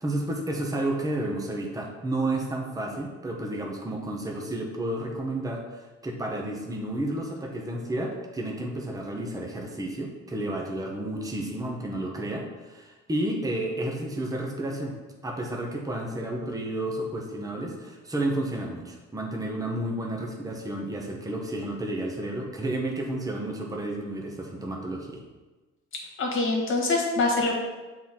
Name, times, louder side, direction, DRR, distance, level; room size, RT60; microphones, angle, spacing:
voice 1, 0.0-14.9 15.2-25.2, right 1 dB, 10° right, 0 dB, 1.2 m, -31 dB
voice 2, 26.2-27.5, left 3 dB, 40° left, 0 dB, 1.9 m, -24 dB
6.9 x 4.1 x 4.4 m, 1.2 s
supercardioid pair, 85°, 30 cm